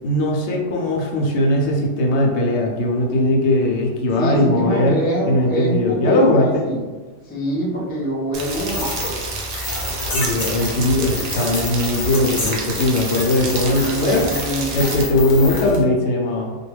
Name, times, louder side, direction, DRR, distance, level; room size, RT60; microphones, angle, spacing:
voice 1, 0.0-5.0 5.3-6.7 10.1-14.3 14.7-16.6, left 1 dB, 80° left, -1 dB, 0.9 m, -19 dB
voice 2, 4.1-6.8 7.2-9.2 13.7-14.8, right 1 dB, 10° left, -6 dB, 0.4 m, -25 dB
Rain, 8.3-15.0, right 3 dB, 80° right, 0.9 m, -30 dB
sound 1, 8.6-15.8, left 2 dB, 50° left, 0.7 m, -29 dB
2.2 x 2.2 x 3.1 m, 1.4 s
omnidirectional pair, 1.2 m